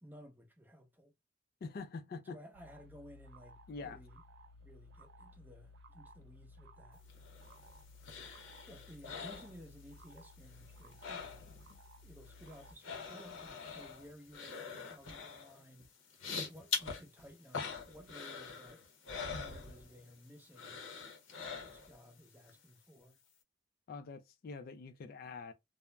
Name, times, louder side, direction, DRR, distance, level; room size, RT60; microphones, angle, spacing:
voice 1, 0.0-1.1 2.2-4.2 4.6-7.0 8.7-11.5 12.0-15.9 16.5-18.8 19.3-20.8 21.4-23.2, equal, 10° right, 0.5 m, -56 dB
voice 2, 1.6-2.4 3.7-4.0 23.9-25.5, left 4 dB, 50° left, 0.3 m, -45 dB
sound 1, 2.5-12.7, left 1 dB, 55° right, 0.4 m, -57 dB
sound 2, 7.1-10.1 10.4-11.8 12.0-20.2 20.5-22.1 22.5-22.6, left 5 dB, 80° left, 0.7 m, -44 dB
2.3 x 2.0 x 3.0 m
head